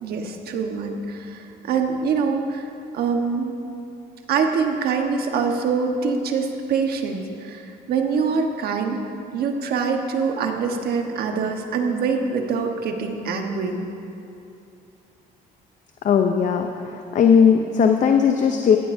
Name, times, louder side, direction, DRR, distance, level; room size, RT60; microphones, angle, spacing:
voice 1, 0.0-2.7 2.9-3.5 4.3-9.0 9.3-13.8, right 5 dB, 65° right, 4 dB, 1.3 m, -24 dB
voice 2, 16.0-18.8, left 7 dB, 50° left, 5 dB, 0.7 m, -18 dB
16.0 x 15.5 x 2.7 m, 2.7 s
cardioid pair, 110°, 17 cm